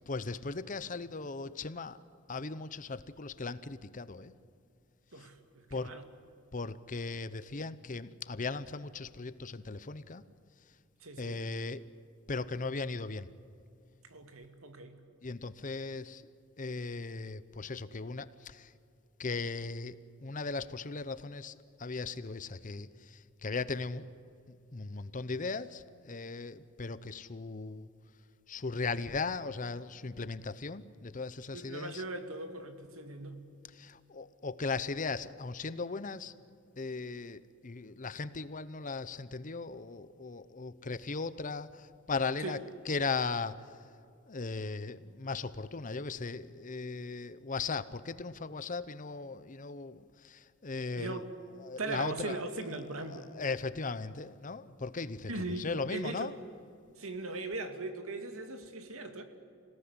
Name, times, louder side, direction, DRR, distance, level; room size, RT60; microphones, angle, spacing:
voice 1, 0.1-2.0 2.3-4.3 5.2-5.3 5.7-5.9 6.5-10.2 11.2-11.9 12.3-13.3 15.2-16.2 16.6-18.7 19.2-20.0 20.2-24.1 24.5-27.9 28.5-32.0 33.8-36.3 36.8-42.6 42.9-43.6 44.3-51.2 51.6-52.4 53.1-56.3, left 4 dB, 35° left, 15 dB, 0.8 m, -37 dB
voice 2, 5.1-6.1 11.0-11.4 14.0-15.0 31.5-33.5 42.4-42.6 51.0-51.3 51.8-53.3 55.3-56.3 57.0-59.2, right 2 dB, 75° right, 7 dB, 2.3 m, -39 dB
27.5 x 17.5 x 9.8 m, 2.5 s
head